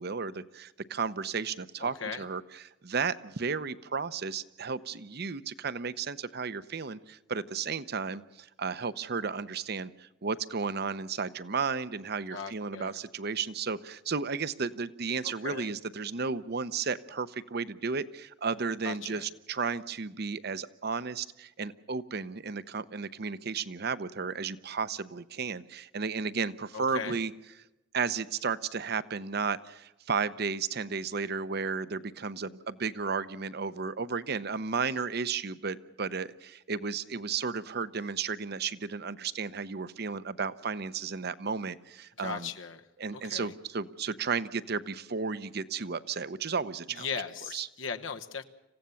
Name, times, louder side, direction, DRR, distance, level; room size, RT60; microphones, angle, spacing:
voice 1, 0.0-2.4 2.8-27.3 27.9-42.5 43.0-47.1 47.5-47.7, right 5 dB, 55° right, 15 dB, 0.8 m, -33 dB
voice 2, 1.8-2.2 12.3-13.0 15.2-15.7 18.8-19.2 26.7-27.2 42.2-42.8 43.1-43.5 46.9-48.4, left 6 dB, 85° left, 7 dB, 1.1 m, -38 dB
27.0 x 16.0 x 7.1 m, 0.99 s
head